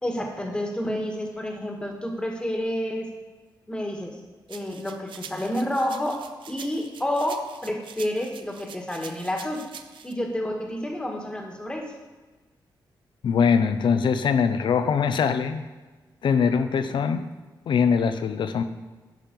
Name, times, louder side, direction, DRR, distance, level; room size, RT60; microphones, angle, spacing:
voice 1, 0.0-3.0 3.7-4.1 4.5-9.6 10.0-11.9, left 1 dB, 10° left, 1 dB, 1.5 m, -29 dB
sound 1, 4.5-10.1, right 7 dB, 75° right, 0.6 m, -44 dB
voice 2, 13.2-15.6 16.2-17.2 17.7-18.6, left 6 dB, 75° left, 10 dB, 0.7 m, -22 dB
10.5 x 5.8 x 5.3 m, 1.3 s
wide cardioid pair, 115°, 8 cm